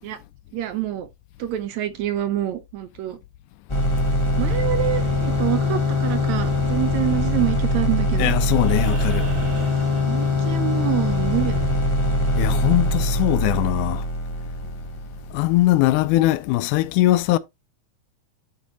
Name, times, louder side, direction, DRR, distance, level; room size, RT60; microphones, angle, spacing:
voice 1, 0.5-1.1 1.4-3.2 4.4-8.3 10.0-11.6, right 13 dB, 75° right, 1.8 m, -26 dB
sound 1, 3.7-15.5, left 2 dB, 30° left, 0.5 m, -22 dB
voice 2, 8.2-9.3 12.4-14.0 15.3-17.4, left 16 dB, 80° left, 2.0 m, -20 dB
sound 2, 8.5-10.8 12.7-12.8, right 4 dB, 35° right, 1.2 m, -39 dB
10.5 x 4.3 x 2.9 m
omnidirectional pair, 3.7 m